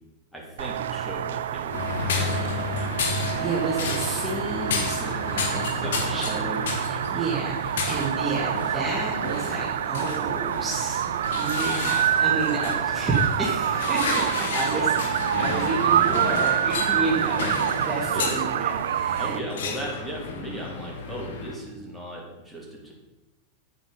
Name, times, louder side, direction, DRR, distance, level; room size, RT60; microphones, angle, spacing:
voice 1, 0.3-3.2 5.8-6.6 7.0-7.4 12.3-13.0 14.7-14.9 18.1-18.3 19.2-22.9, right 1 dB, 5° left, -3 dB, 3.2 m, -37 dB
sound 1, 0.6-19.4, right 10 dB, 60° right, 0.3 m, -27 dB
sound 2, 1.7-21.6, left 4 dB, 60° left, 1.6 m, -32 dB
voice 2, 3.1-11.0 11.4-15.0 15.3-19.4, right 3 dB, 15° right, -5 dB, 2.2 m, -31 dB
9.1 x 8.8 x 5.2 m, 1.0 s
figure-of-eight pair, 90°, 0 cm